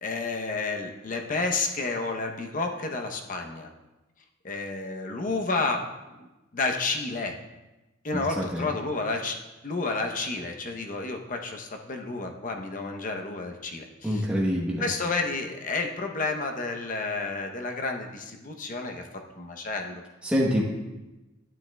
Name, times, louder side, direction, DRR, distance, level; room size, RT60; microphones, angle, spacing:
voice 1, 0.0-3.7 4.4-5.8 6.5-7.4 8.0-9.4 9.6-14.2 14.8-19.0 19.4-20.0, left 3 dB, 40° left, 3 dB, 0.8 m, -30 dB
voice 2, 8.1-8.7 14.0-14.8 20.2-20.6, equal, 5° right, -4 dB, 1.0 m, -26 dB
10.5 x 9.1 x 2.3 m, 1.1 s
head